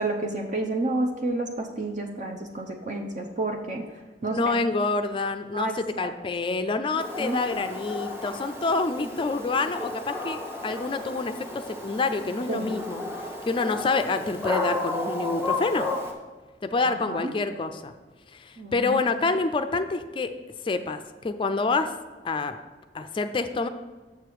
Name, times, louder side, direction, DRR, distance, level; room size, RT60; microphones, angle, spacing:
voice 1, 0.0-3.8 4.2-4.5 5.5-6.1 7.2-7.4 12.5-12.7 16.8-17.3 18.6-19.0, right 2 dB, 45° right, 2 dB, 0.7 m, -30 dB
voice 2, 4.2-13.0 13.5-15.9 16.6-17.9 18.3-20.3 20.6-21.9 22.2-22.6 22.9-23.7, left 3 dB, 30° left, 9 dB, 0.4 m, -27 dB
Dog, 7.0-16.1, left 2 dB, 15° right, 1.2 m, -33 dB
6.8 x 6.8 x 4.7 m, 1.3 s
head